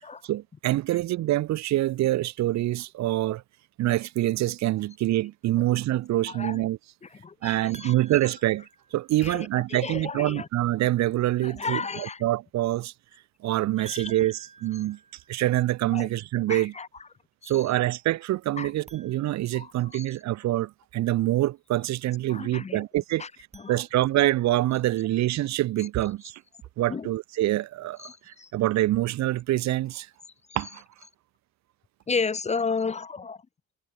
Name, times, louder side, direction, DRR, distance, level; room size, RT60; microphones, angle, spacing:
voice 1, 0.2-3.4 3.8-6.8 7.4-12.9 13.4-15.0 15.3-16.7 17.5-23.3 23.7-26.4 26.8-30.1 30.6-30.8, right 15 dB, 65° right, 0.5 m, -26 dB
voice 2, 6.3-6.6 7.1-7.9 9.2-10.5 11.4-12.2 13.8-14.1 15.9-16.1 16.5-16.9 17.4-17.5 18.6-18.7 19.5-20.1 22.3-22.8 23.2-23.8 26.9-27.1 28.0-28.5 32.1-33.4, left 4 dB, 20° left, 0.5 m, -33 dB
sound 1, 7.7-9.4 13.8-15.9 18.8-20.4 23.3-24.5, right 4 dB, 20° right, 1.0 m, -51 dB
cardioid pair, 90°, 30 cm